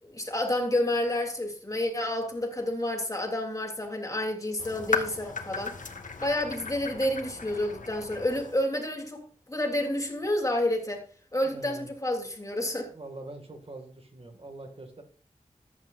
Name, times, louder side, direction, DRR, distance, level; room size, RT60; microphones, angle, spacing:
voice 1, 0.0-5.8 6.2-11.0 11.3-12.9, left 1 dB, 25° left, 3.1 m, -29 dB
sound 1, 4.6-8.6, left 4 dB, 75° left, 1.7 m, -36 dB
voice 2, 11.4-11.9 12.9-15.0, right 2 dB, 45° right, 2.1 m, -44 dB
14.5 x 12.0 x 2.6 m
wide cardioid pair, 90°, 13 cm